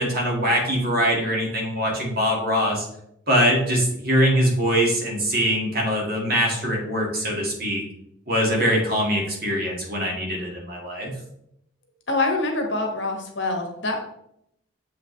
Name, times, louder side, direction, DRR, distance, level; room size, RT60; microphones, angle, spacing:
voice 1, 0.0-2.9 3.3-7.8 8.3-11.1, equal, 50° right, -1 dB, 2.0 m, -22 dB
voice 2, 12.1-14.0, left 2 dB, 60° left, 3 dB, 1.3 m, -25 dB
7.4 x 5.1 x 3.2 m, 0.76 s
head